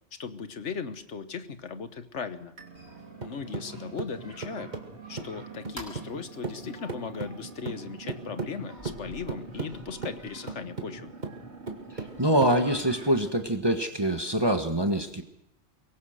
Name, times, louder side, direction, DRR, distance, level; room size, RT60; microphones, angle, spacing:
voice 1, 0.2-2.5 3.2-4.7 5.1-11.1, left 5 dB, 85° left, 10 dB, 1.6 m, -37 dB
sound 1, 2.6-13.5, right 4 dB, 70° right, 3.4 m, -47 dB
sound 2, 2.8-6.2 6.4-13.1, right 3 dB, 40° right, 2.2 m, -38 dB
sound 3, 5.8-6.7 7.2-7.3 7.7-7.8 8.3-8.4 8.8-13.8, equal, 15° left, 5.8 m, -51 dB
voice 2, 12.2-15.2, right 1 dB, 20° right, 5 dB, 1.4 m, -25 dB
23.5 x 20.0 x 6.6 m, 0.83 s
omnidirectional pair, 1.2 m